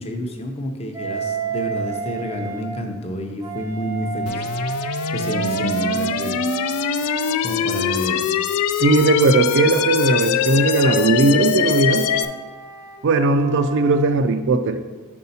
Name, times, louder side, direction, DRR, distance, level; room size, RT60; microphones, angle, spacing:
voice 1, 0.0-4.4 5.1-6.4 7.4-8.2, equal, 30° left, 4 dB, 0.6 m, -29 dB
Wind instrument woodwind instrument, 0.9-2.7 3.4-8.2 8.8-14.1, right 6 dB, 15° right, 0.6 m, -31 dB
sound 1, 4.3-12.3, left 8 dB, 90° left, 0.3 m, -23 dB
voice 2, 8.8-12.1 13.0-14.8, right 3 dB, 55° right, 9 dB, 0.4 m, -18 dB
5.4 x 4.7 x 4.1 m, 1.3 s
head